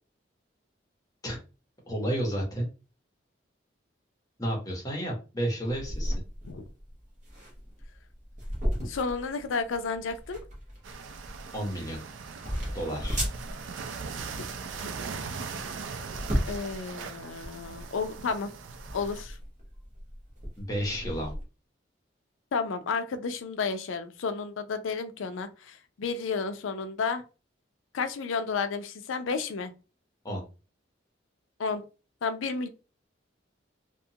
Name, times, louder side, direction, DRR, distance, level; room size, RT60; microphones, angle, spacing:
voice 1, 1.9-2.7 4.4-6.1 11.5-12.0 12.7-13.2 20.6-21.3 30.2-30.4, right 1 dB, 20° left, 0 dB, 0.8 m, -31 dB
sound 1, 5.7-21.4, equal, 40° right, 0.9 m, -36 dB
voice 2, 8.8-10.4 16.4-18.5 18.9-19.4 22.5-27.2 27.9-29.7 31.6-31.8 32.2-32.7, left 4 dB, 85° left, 9 dB, 0.4 m, -32 dB
sound 2, 10.8-19.2, right 5 dB, 80° right, 0.4 m, -40 dB
2.8 x 2.3 x 2.7 m, 0.33 s
head